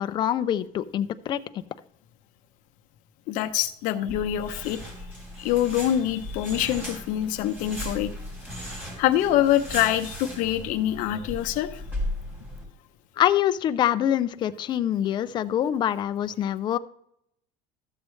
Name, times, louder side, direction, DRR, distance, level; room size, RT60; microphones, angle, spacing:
voice 1, 0.0-1.4 13.2-16.8, left 11 dB, 30° left, 12 dB, 0.4 m, -25 dB
voice 2, 3.3-4.8 5.4-8.1 9.0-11.8, left 12 dB, 60° left, 8 dB, 0.8 m, -25 dB
sound 1, 4.1-12.6, left 1 dB, 10° right, 2.7 m, -37 dB
13.5 x 7.3 x 3.2 m, 0.72 s
cardioid pair, 160°, 15 cm